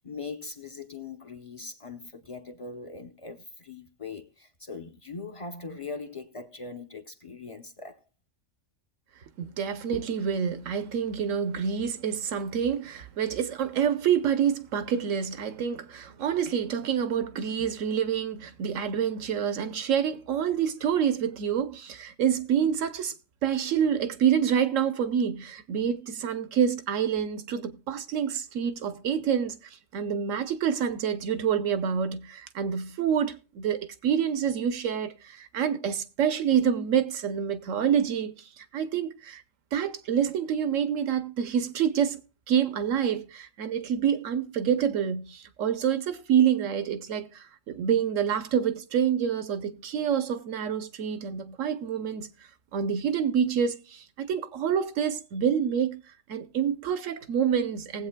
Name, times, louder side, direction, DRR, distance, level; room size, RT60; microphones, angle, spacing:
voice 1, 0.0-8.0, left 4 dB, 30° left, 0.7 m, -41 dB
voice 2, 9.4-23.1 23.4-29.6 29.9-39.4 39.7-42.2 42.5-52.3 52.7-56.0 56.3-58.1, right 8 dB, 80° right, 1.2 m, -27 dB
19.5 x 8.0 x 2.2 m
omnidirectional pair, 1.3 m